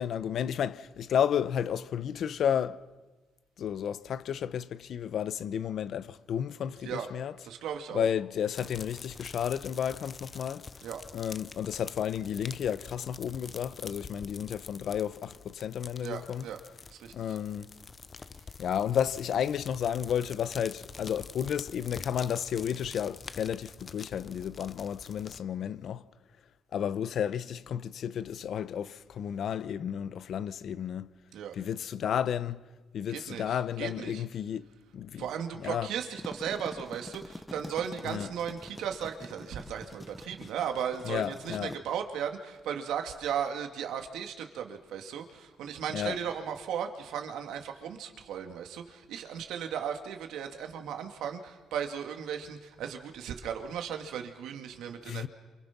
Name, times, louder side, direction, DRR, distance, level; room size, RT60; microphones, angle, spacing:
voice 1, 0.0-2.8 3.6-7.3 7.9-10.7 11.1-16.5 17.1-17.7 18.6-26.0 26.7-31.1 31.5-32.6 32.9-34.7 34.9-35.2 35.6-35.9 38.0-38.3 41.0-41.7 45.9-46.2 55.1-55.3, left 9 dB, 65° left, 0.9 m, -32 dB
voice 2, 7.4-8.1 10.8-11.0 16.0-16.6 16.9-17.4 31.3-31.6 33.1-34.2 35.2-55.3, right 8 dB, 85° right, 2.4 m, -36 dB
sound 1, 8.5-25.4, left 5 dB, 35° left, 0.8 m, -47 dB
sound 2, 36.2-41.8, left 1 dB, 15° left, 1.2 m, -46 dB
29.0 x 27.0 x 6.1 m
cardioid pair, 90°, 0 cm